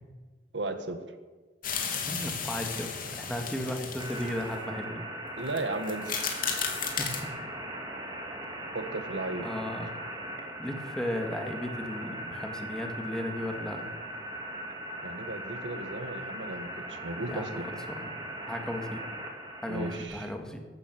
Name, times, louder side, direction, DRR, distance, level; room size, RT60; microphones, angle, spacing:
voice 1, 0.5-1.0 5.4-6.2 8.7-9.5 15.0-17.7 19.7-20.3, right 2 dB, 85° right, 8 dB, 1.7 m, -35 dB
sound 1, 1.6-4.6 5.5-5.6 5.8-7.2, left 6 dB, 50° left, 2.8 m, -34 dB
voice 2, 2.1-5.1 7.0-7.1 9.4-9.9 10.6-13.9 17.3-17.6 17.9-18.1 18.5-19.0 19.6-20.6, left 1 dB, 5° left, 3 dB, 2.0 m, -35 dB
sound 2, 4.0-20.0, right 1 dB, 25° right, 2.7 m, -39 dB
14.5 x 12.0 x 7.8 m, 1.3 s
head